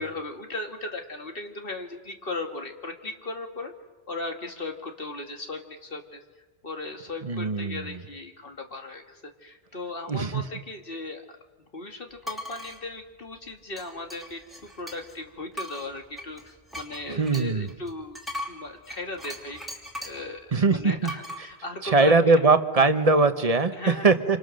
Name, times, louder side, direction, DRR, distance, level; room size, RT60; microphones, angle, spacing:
voice 1, 0.0-3.7 4.1-6.2 6.6-11.2 11.7-18.2 18.5-22.4 23.7-24.1, left 2 dB, 60° left, 4 dB, 2.2 m, -37 dB
voice 2, 7.2-8.0 10.1-10.4 17.1-17.7 20.5-21.1 21.8-24.4, right 3 dB, 35° right, 10 dB, 1.2 m, -21 dB
sound 1, 12.2-12.8 13.8-15.2 15.5-20.3 21.1-21.4, left 1 dB, ahead, 3.2 m, -38 dB
27.0 x 26.5 x 6.5 m, 1.2 s
omnidirectional pair, 1.1 m